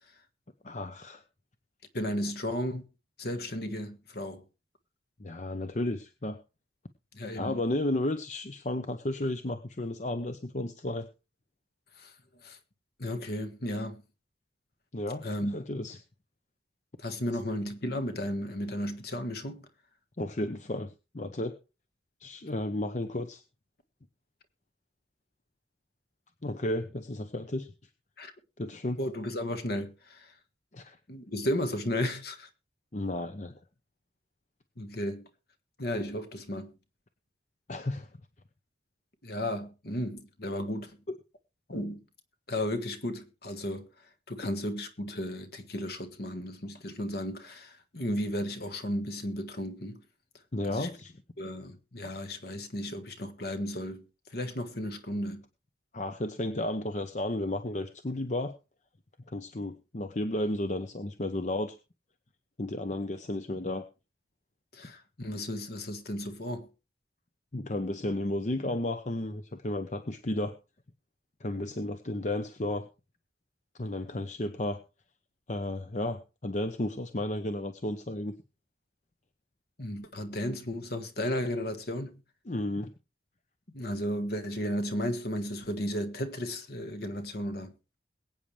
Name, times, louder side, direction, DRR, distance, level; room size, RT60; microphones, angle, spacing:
voice 1, 0.6-1.2 5.2-6.4 7.3-11.1 14.9-15.3 15.5-16.0 20.2-21.5 22.2-23.4 26.4-27.7 28.6-29.0 30.7-31.0 32.9-33.6 37.7-38.1 41.1-41.2 50.5-51.1 55.9-58.5 59.3-61.8 62.6-63.8 67.5-70.5 71.4-72.8 73.8-74.8 75.5-78.4 82.5-82.9, left 1 dB, 40° left, 0.8 m, -33 dB
voice 2, 1.9-2.8 3.2-4.4 7.1-7.6 12.0-12.1 12.4-12.6 13.0-14.0 15.2-15.5 17.0-19.6 28.2-28.3 29.0-30.3 31.1-32.5 34.8-35.3 35.8-36.7 39.2-41.0 41.7-42.0 42.5-43.9 44.3-50.0 50.7-50.9 51.4-54.1 54.3-55.4 64.7-66.7 79.8-82.2 83.7-87.7, left 1 dB, 55° left, 1.6 m, -34 dB
22.0 x 8.7 x 3.3 m
head